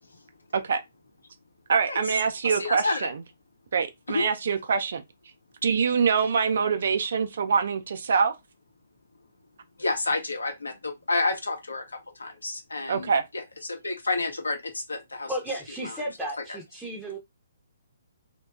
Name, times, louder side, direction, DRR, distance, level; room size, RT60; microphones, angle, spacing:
voice 1, 1.7-3.1 3.7-5.0 5.6-8.3 12.9-13.2, right 6 dB, 55° right, 0.3 m, -24 dB
voice 2, 2.4-3.1 4.1-4.3 9.8-13.4 13.7-15.3 15.8-16.0 16.5-16.6, left 3 dB, 70° left, 0.7 m, -30 dB
voice 3, 15.3-17.2, right 1 dB, ahead, 0.6 m, -34 dB
2.7 x 2.2 x 2.2 m
figure-of-eight pair, 130°, 0 cm